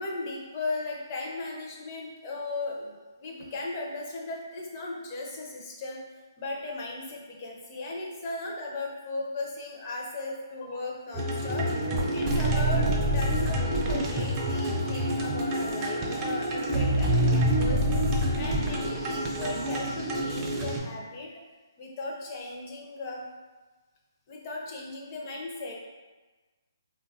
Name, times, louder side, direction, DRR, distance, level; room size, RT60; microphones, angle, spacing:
voice 1, 0.0-2.9 3.2-6.0 6.4-11.7 12.1-17.8 18.4-21.3 21.8-23.2 24.3-25.8, left 2 dB, 35° left, -1 dB, 0.5 m, -36 dB
sound 1, 11.1-20.8, right 1 dB, 20° right, 0.4 m, -27 dB
3.0 x 2.2 x 2.7 m, 1.3 s
hypercardioid pair, 150°, 2 cm